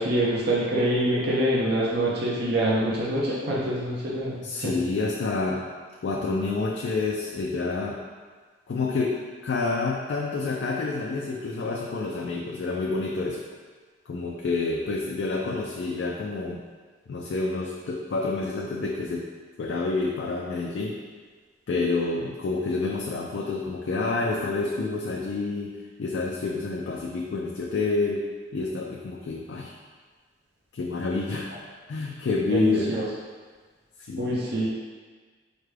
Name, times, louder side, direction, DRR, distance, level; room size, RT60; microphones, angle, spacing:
voice 1, 0.0-4.7 32.5-33.1 34.2-34.7, right 1 dB, 60° right, -5 dB, 0.6 m, -25 dB
voice 2, 4.4-5.7 6.0-8.0 8.7-13.4 14.1-16.6 17.1-19.3 19.6-21.0 21.7-28.2 28.5-29.7 30.7-31.5 31.9-32.9 34.0-34.4, left 3 dB, 65° left, -2 dB, 0.3 m, -28 dB
4.7 x 2.2 x 3.2 m, 1.5 s
head